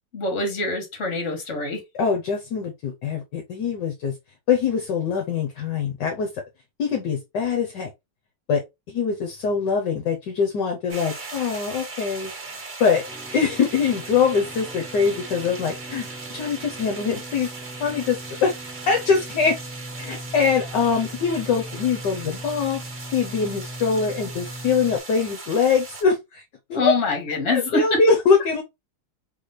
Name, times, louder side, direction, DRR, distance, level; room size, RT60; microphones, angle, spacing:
voice 1, 0.1-1.8 26.7-28.0, left 3 dB, 40° left, 1.7 m, -25 dB
voice 2, 2.0-4.1 4.5-6.3 6.8-7.9 8.5-8.6 8.9-13.0 13.3-17.5 17.8-19.6 20.0-22.8 23.1-26.4 26.7-26.9 27.5-28.6, left 5 dB, 65° left, 1.3 m, -23 dB
sound 1, 10.9-26.0, right 3 dB, 30° right, 1.7 m, -39 dB
sound 2, 13.0-25.0, right 1 dB, ahead, 1.2 m, -39 dB
4.1 x 3.5 x 3.1 m
omnidirectional pair, 2.2 m